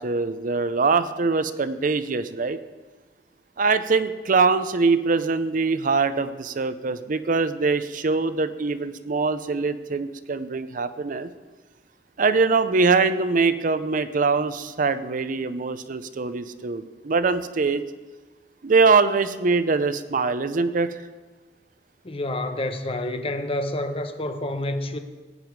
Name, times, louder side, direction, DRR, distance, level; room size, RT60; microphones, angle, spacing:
voice 1, 0.0-2.6 3.6-11.3 12.2-17.8 18.6-21.0, right 4 dB, 50° right, 12 dB, 0.6 m, -23 dB
voice 2, 22.0-25.0, left 1 dB, 35° left, 8 dB, 0.9 m, -28 dB
16.5 x 9.1 x 4.7 m, 1.3 s
head